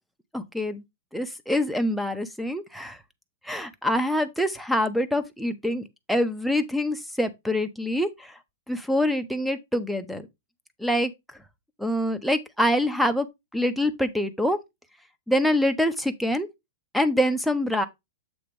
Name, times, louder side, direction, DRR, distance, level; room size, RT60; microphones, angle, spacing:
voice 1, 0.3-0.8 1.1-3.0 3.4-8.3 8.7-10.2 10.8-11.1 11.8-13.3 13.5-14.6 15.3-16.5 16.9-17.9, left 1 dB, ahead, 0.7 m, -25 dB
7.8 x 2.9 x 5.2 m
hypercardioid pair, 145°, 0 cm